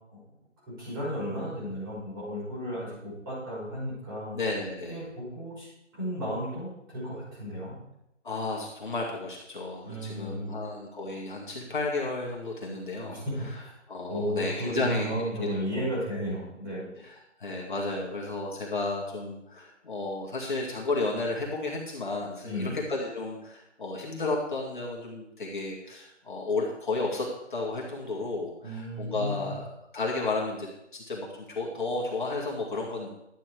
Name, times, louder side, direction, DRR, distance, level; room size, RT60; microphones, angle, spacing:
voice 1, 0.7-4.4 4.9-5.7 5.9-7.8 9.8-10.6 13.1-13.2 14.1-17.0 22.4-22.8 28.6-29.4, equal, 20° right, -7 dB, 5.1 m, -34 dB
voice 2, 4.3-5.0 8.2-13.2 13.9-15.1 15.4-16.2 17.0-29.7 29.9-30.7 30.9-33.1, left 3 dB, 40° left, -3 dB, 2.2 m, -33 dB
11.5 x 8.4 x 4.8 m, 0.84 s
hypercardioid pair, 170°, 37 cm